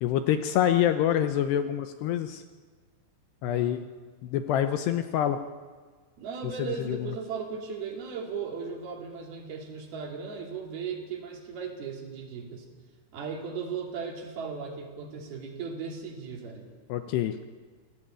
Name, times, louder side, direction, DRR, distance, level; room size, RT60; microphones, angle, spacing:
voice 1, 0.0-2.4 3.4-3.9 4.2-5.4 6.8-7.1 16.9-17.4, left 10 dB, 75° left, 9 dB, 2.7 m, -26 dB
voice 2, 3.4-3.9 6.2-12.7 13.1-16.7, right 5 dB, 55° right, 2 dB, 4.5 m, -37 dB
26.5 x 17.0 x 9.0 m, 1.5 s
omnidirectional pair, 5.4 m